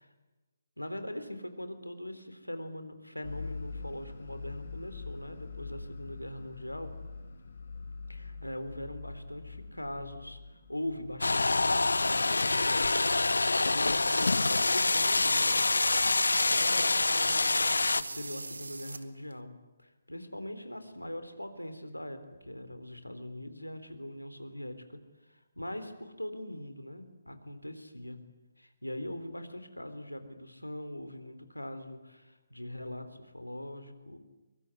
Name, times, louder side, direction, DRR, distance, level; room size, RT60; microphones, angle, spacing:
voice 1, 0.8-6.9 8.1-13.2 13.7-15.7 16.3-16.9 17.1-19.5 19.8-28.2 28.6-34.2, left 1 dB, 85° left, 9 dB, 3.6 m, -41 dB
sound 1, 3.2-11.3, left 4 dB, 50° left, 2.5 m, -44 dB
sound 2, 11.2-18.0, left 3 dB, 70° left, 0.8 m, -26 dB
sound 3, 13.6-19.4, right 3 dB, 70° right, 1.8 m, -44 dB
23.5 x 23.0 x 9.8 m, 1.1 s
figure-of-eight pair, 140°, 0 cm